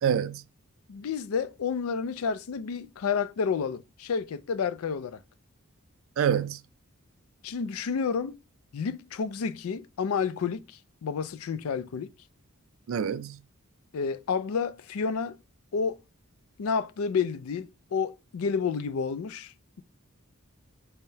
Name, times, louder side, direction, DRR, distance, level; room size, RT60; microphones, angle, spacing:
voice 1, 0.0-0.4 6.2-6.6 12.9-13.4, right 8 dB, 65° right, 0.3 m, -26 dB
voice 2, 0.9-5.2 7.4-8.4 8.7-12.1 13.9-15.4 15.7-16.0 16.6-19.8, left 5 dB, 75° left, 0.4 m, -30 dB
5.5 x 2.1 x 2.7 m
head